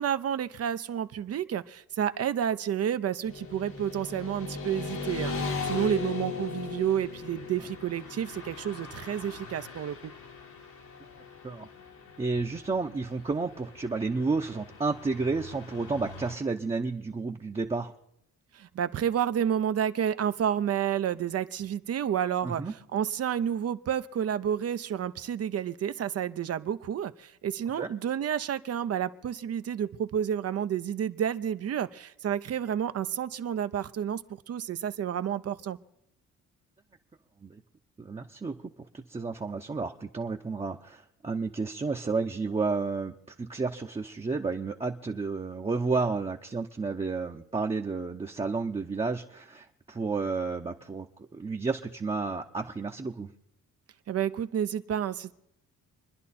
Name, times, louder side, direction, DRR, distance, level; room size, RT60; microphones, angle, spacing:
voice 1, 0.0-10.1 18.5-35.8 54.1-55.3, right 9 dB, 55° right, 12 dB, 0.7 m, -30 dB
Motorcycle / Traffic noise roadway noise, 3.2-16.3, left 4 dB, 80° left, 2.6 m, -39 dB
voice 2, 12.2-17.9 22.4-22.7 27.8-27.9 37.4-37.6 38.0-38.6 39.1-43.1 43.4-51.1 51.3-53.3, right 4 dB, 20° right, 1 dB, 0.8 m, -31 dB
27.0 x 10.5 x 4.3 m, 0.80 s
cardioid pair, 90°, 30 cm